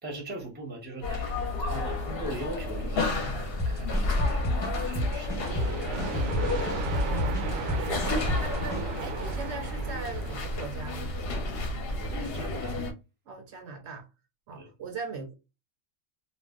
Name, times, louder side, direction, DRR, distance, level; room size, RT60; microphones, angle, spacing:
voice 1, 0.0-5.7 6.1-6.3 7.0-7.3 11.9-12.8 14.6-14.7, right 1 dB, 10° right, 0.6 m, -41 dB
sound 1, 1.0-12.9, left 2 dB, 55° left, 0.8 m, -31 dB
sound 2, 3.6-8.8, left 1 dB, 20° left, 0.9 m, -31 dB
sound 3, 5.4-11.1, right 3 dB, 90° right, 1.0 m, -35 dB
voice 2, 7.0-11.1 13.3-14.1 14.5-15.3, right 4 dB, 65° right, 0.8 m, -40 dB
2.4 x 2.1 x 3.5 m
omnidirectional pair, 1.3 m